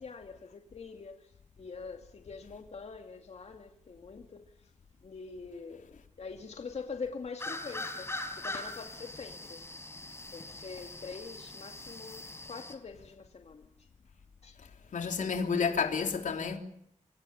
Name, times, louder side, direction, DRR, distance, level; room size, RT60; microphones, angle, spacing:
voice 1, 0.0-4.7 5.0-8.1 8.4-9.6 10.3-13.9 14.4-14.6, left 4 dB, 55° left, 2.4 m, -44 dB
sound 1, 7.4-12.7, left 2 dB, 20° left, 4.3 m, -41 dB
voice 2, 14.9-16.6, left 5 dB, 85° left, 3.5 m, -30 dB
27.0 x 26.0 x 7.2 m
wide cardioid pair, 145°, 13 cm